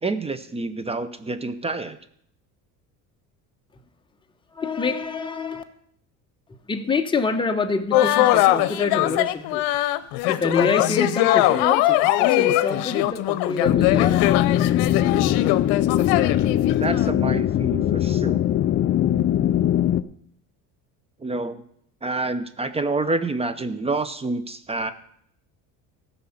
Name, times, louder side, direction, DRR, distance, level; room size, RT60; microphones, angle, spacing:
voice 1, 0.0-2.0 16.8-18.4 21.2-21.6 22.0-24.9, right 3 dB, 15° right, 12 dB, 0.6 m, -28 dB
voice 2, 4.5-5.6 6.7-9.6 10.3-14.2, left 4 dB, 15° left, 5 dB, 1.0 m, -26 dB
sound 1, 7.9-17.1, left 15 dB, 85° left, 0.7 m, -21 dB
sound 2, 13.6-20.0, left 11 dB, 35° left, 0.4 m, -21 dB
14.5 x 5.6 x 7.1 m, 0.69 s
cardioid pair, 120°, 37 cm